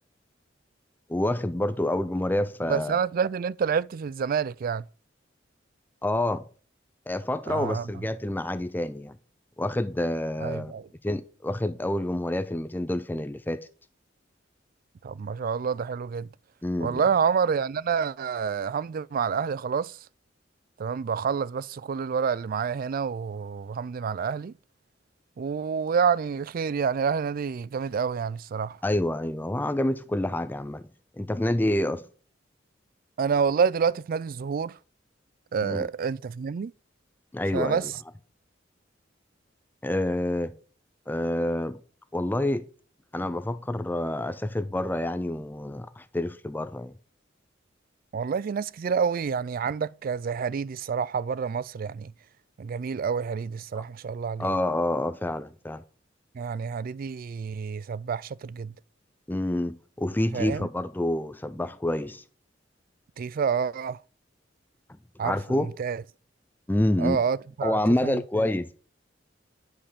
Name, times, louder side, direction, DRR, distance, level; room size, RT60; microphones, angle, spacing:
voice 1, 1.1-3.0 6.0-6.5 7.1-9.2 9.6-10.7 11.0-13.7 16.6-17.0 28.8-30.9 31.2-32.1 35.6-35.9 37.3-37.9 39.8-40.6 41.1-41.8 42.1-42.7 43.1-46.9 53.7-53.8 54.4-55.8 59.3-62.2 65.2-65.7 66.7-67.2 67.6-68.7, left 1 dB, 10° left, 0.4 m, -28 dB
voice 2, 2.7-4.8 7.5-7.9 10.4-10.9 15.0-16.3 16.8-20.0 20.8-24.5 25.4-28.8 33.2-34.8 35.5-36.7 37.5-37.9 48.1-52.1 52.6-54.5 56.3-58.7 60.3-60.7 63.2-64.0 65.2-65.4 65.8-66.0 67.0-68.2, right 6 dB, 50° right, 0.4 m, -28 dB
10.0 x 5.5 x 6.7 m
head